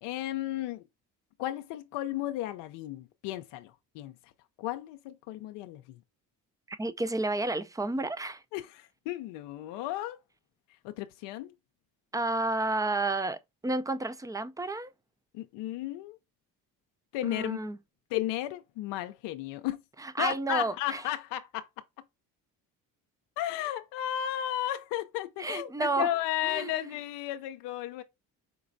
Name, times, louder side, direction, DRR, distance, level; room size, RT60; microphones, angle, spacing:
voice 1, 0.0-0.8 1.4-4.1 4.6-6.0 8.5-10.2 10.8-11.5 15.3-16.2 17.1-17.6 18.1-19.8 20.2-21.7 23.4-28.0, left 13 dB, 90° left, 0.6 m, -34 dB
voice 2, 6.7-8.4 12.1-14.9 17.2-17.8 20.0-21.0 25.4-26.1 26.4-26.8, right 2 dB, 10° right, 0.4 m, -31 dB
5.2 x 3.1 x 2.6 m
supercardioid pair, 70°, 41 cm